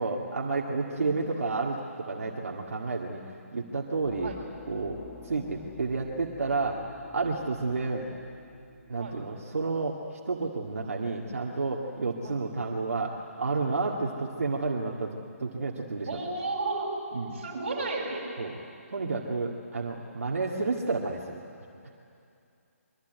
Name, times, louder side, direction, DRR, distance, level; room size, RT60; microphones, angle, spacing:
voice 1, 0.0-3.2 3.5-4.3 4.7-6.8 7.1-8.1 8.9-10.0 10.3-16.1 17.1-17.4 18.4-18.5 18.9-21.4, right 3 dB, 65° right, -1 dB, 2.2 m, -30 dB
sound 1, 3.9-9.8, left 5 dB, 20° left, 1.3 m, -49 dB
voice 2, 5.3-5.7 9.0-9.2 12.2-12.4 16.1-16.9 17.3-18.2, right 3 dB, 35° right, -3 dB, 7.3 m, -33 dB
25.5 x 23.0 x 9.3 m, 2.6 s
hypercardioid pair, 175°, 8 cm